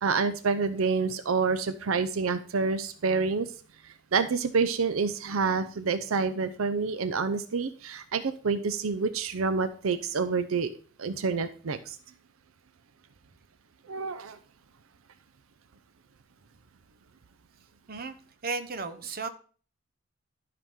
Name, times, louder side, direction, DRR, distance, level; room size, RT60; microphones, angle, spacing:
voice 1, 0.0-3.5 3.8-10.7 11.0-12.0 13.9-14.4, right 4 dB, 80° right, 12 dB, 0.6 m, -28 dB
voice 2, 18.4-19.3, right 4 dB, 45° right, 10 dB, 0.8 m, -34 dB
12.0 x 5.8 x 3.6 m, 0.41 s
head